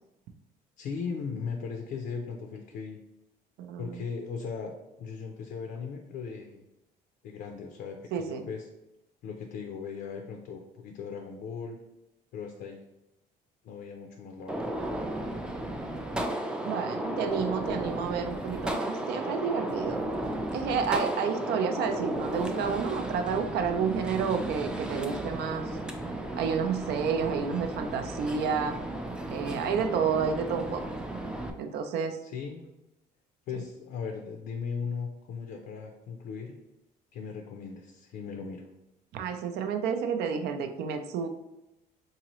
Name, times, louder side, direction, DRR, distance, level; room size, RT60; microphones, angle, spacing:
voice 1, 0.8-3.0 3.8-6.7 7.2-8.7 9.2-11.8 12.3-12.8 13.6-14.7 32.2-32.7 33.5-36.6 37.1-38.6, left 5 dB, 65° left, 3 dB, 0.5 m, -38 dB
voice 2, 3.6-4.0 8.1-8.5 16.6-20.1 20.5-25.8 26.4-28.8 29.3-30.8 31.6-32.2 39.1-41.3, right 6 dB, 75° right, 6 dB, 0.5 m, -30 dB
Gunshot gunfire, 14.5-31.5, right 1 dB, 5° right, 0.4 m, -34 dB
3.8 x 2.8 x 3.0 m, 0.93 s
cardioid pair, 110°, 17 cm